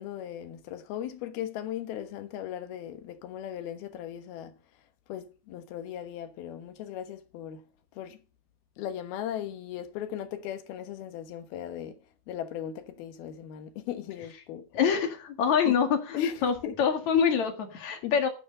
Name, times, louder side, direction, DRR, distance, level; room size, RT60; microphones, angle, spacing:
voice 1, 0.0-4.5 5.1-7.6 7.9-8.2 8.8-12.0 12.3-14.7 15.6-15.8 16.1-16.8 18.0-18.1, left 10 dB, 70° left, 3.0 m, -38 dB
voice 2, 14.7-18.3, left 7 dB, 50° left, 2.8 m, -25 dB
12.0 x 9.6 x 5.3 m
omnidirectional pair, 4.9 m